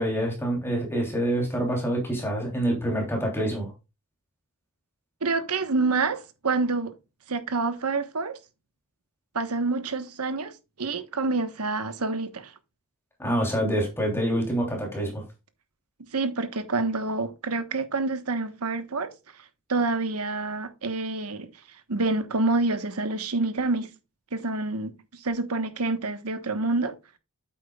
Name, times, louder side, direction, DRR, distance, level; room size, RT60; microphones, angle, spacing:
voice 1, 0.0-3.7 13.2-15.2, right 1 dB, 10° left, 3.1 m, -26 dB
voice 2, 5.2-6.9 7.3-8.4 9.3-12.5 16.1-19.1 19.7-21.5 21.9-23.9 24.3-26.9, right 3 dB, 85° right, 1.2 m, -27 dB
8.7 x 8.3 x 2.3 m
head